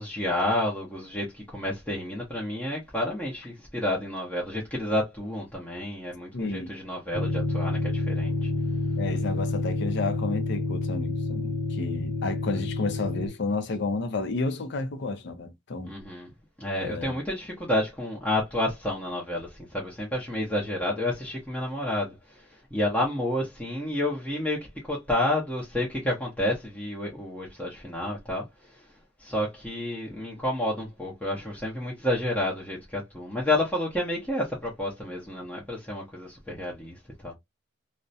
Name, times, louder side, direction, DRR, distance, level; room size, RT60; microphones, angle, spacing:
voice 1, 0.0-8.5 15.9-16.3 16.6-22.4 22.7-28.4 29.2-36.9 37.2-37.3, left 1 dB, 5° left, 0.6 m, -30 dB
voice 2, 6.3-6.7 9.0-15.9 16.8-17.2, left 3 dB, 60° left, 0.5 m, -31 dB
sound 1, 7.1-13.3, left 2 dB, 40° left, 0.9 m, -28 dB
2.4 x 2.1 x 2.6 m
head